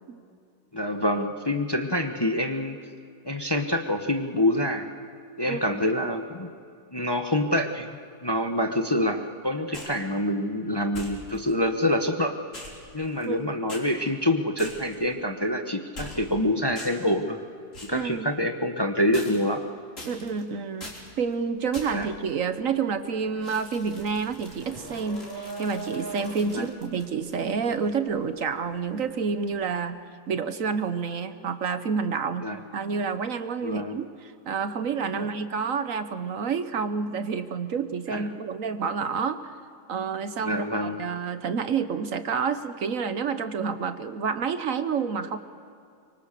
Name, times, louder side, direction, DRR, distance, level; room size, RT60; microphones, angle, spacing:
voice 1, 0.7-2.8 3.2-4.9 5.4-6.5 6.9-7.9 8.2-12.3 12.9-17.4 17.8-19.6 21.9-22.1 26.5-26.7 32.4-32.6 33.6-33.9 35.1-35.3 38.1-38.2 40.4-41.0, left 1 dB, 20° left, 5 dB, 1.0 m, -26 dB
voice 2, 5.4-5.8 13.2-13.5 17.9-18.3 20.0-30.0 30.3-32.5 32.7-39.5 39.9-45.4, right 5 dB, 60° right, 11 dB, 1.3 m, -29 dB
sound 1, 9.7-10.0 10.9-11.5 12.5-13.4 13.7-13.9 14.6-15.0 15.9-16.4 16.7-17.1 17.7-18.0 19.1-19.6 20.0-20.4 20.8-21.1 21.7-22.1 23.4-27.4, left 1 dB, 55° left, 4.3 m, -43 dB
sound 2, 21.6-21.8 22.2-29.2, right 2 dB, 15° right, 4.6 m, -41 dB
25.0 x 24.0 x 6.7 m, 2.4 s
omnidirectional pair, 1.7 m